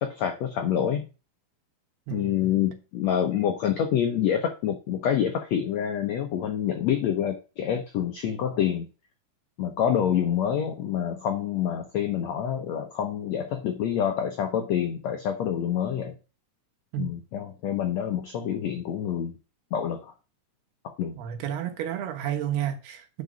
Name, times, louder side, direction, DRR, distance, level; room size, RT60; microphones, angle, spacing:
voice 1, 0.0-1.0 2.1-8.8 9.6-16.1 17.0-19.4 19.7-20.1 20.8-21.2, left 9 dB, 85° left, 1.5 m, -27 dB
voice 2, 2.1-2.6 16.9-17.1 21.2-23.2, right 10 dB, 85° right, 3.4 m, -31 dB
9.0 x 4.9 x 5.3 m
omnidirectional pair, 4.5 m